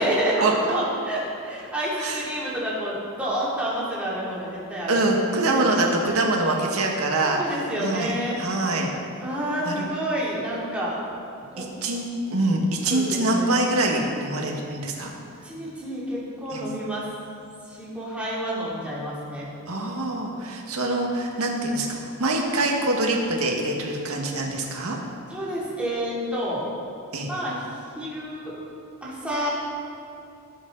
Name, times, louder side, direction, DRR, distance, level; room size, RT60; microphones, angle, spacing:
voice 1, 0.0-5.0 5.5-5.6 7.3-8.4 9.2-10.9 11.4-11.7 12.8-13.5 15.4-17.1 17.7-19.5 25.3-26.6 27.3-27.6 27.9-28.6 29.0-29.5, right 1 dB, 5° right, -8 dB, 3.2 m, -29 dB
voice 2, 4.9-8.9 9.7-9.9 11.6-12.1 12.3-15.1 16.5-16.6 19.7-25.0 27.1-27.3, right 2 dB, 75° right, 0 dB, 1.9 m, -24 dB
18.5 x 8.3 x 4.1 m, 2.6 s
head